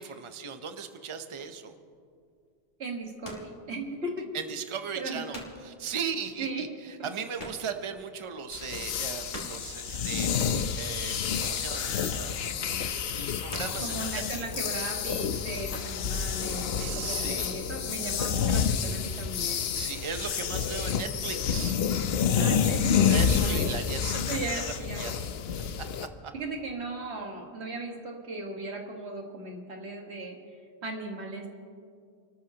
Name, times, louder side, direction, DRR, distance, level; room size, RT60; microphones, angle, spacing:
voice 1, 0.0-1.7 4.3-12.7 13.1-13.9 14.3-14.6 16.7-17.7 19.7-21.8 23.1-25.3 26.2-26.3, right 6 dB, 30° right, 7 dB, 0.8 m, -37 dB
sound 1, 1.3-1.7 2.8-3.6 4.0-4.1 4.7-4.8 5.0-5.7 6.0-6.1 6.4-6.5 6.7-8.0 8.3-8.4 8.8-9.7 11.0-11.8 12.2-12.5 13.1-14.0 14.7-14.9 15.2-16.0, equal, 45° left, 2.5 m, -45 dB
voice 2, 2.8-4.3 5.0-5.2 6.0-6.1 6.4-6.7 7.0-7.1 13.8-19.7 22.4-23.0 23.4-23.7 24.3-25.0 26.3-30.4 30.8-31.5, right 2 dB, 90° right, 1 dB, 1.9 m, -37 dB
sound 2, 8.5-26.1, left 7 dB, 70° left, 0.9 m, -29 dB
29.0 x 13.5 x 2.9 m, 2.3 s
omnidirectional pair, 1.1 m